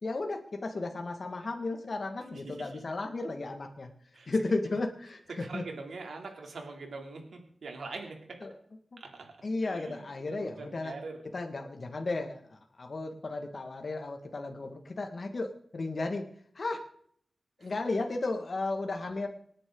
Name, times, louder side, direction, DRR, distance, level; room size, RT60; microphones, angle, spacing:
voice 1, 0.0-3.9 4.3-5.6 8.4-8.5 9.4-10.9 11.3-16.2 16.5-16.8 17.6-19.3, left 3 dB, 55° left, 4 dB, 1.8 m, -34 dB
voice 2, 2.3-2.7 4.1-4.3 5.4-8.2 9.0-9.3 9.6-11.2 17.6-17.7, right 3 dB, 90° right, 2 dB, 3.0 m, -43 dB
26.5 x 10.0 x 3.9 m, 0.63 s
wide cardioid pair, 100°, 0 cm